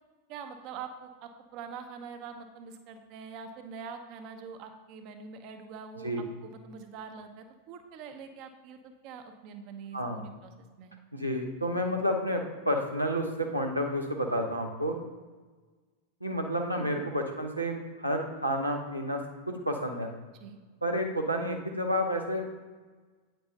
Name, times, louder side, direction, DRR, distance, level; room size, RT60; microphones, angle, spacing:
voice 1, 0.3-6.1 6.4-10.9 16.8-17.1 20.4-20.6, right 6 dB, 40° right, 7 dB, 1.0 m, -44 dB
voice 2, 9.9-10.2 11.1-14.9 16.2-19.2 19.5-20.1 20.8-22.4, equal, 85° right, 2 dB, 1.0 m, -30 dB
8.9 x 8.8 x 2.8 m, 1.4 s
figure-of-eight pair, 90°, 0 cm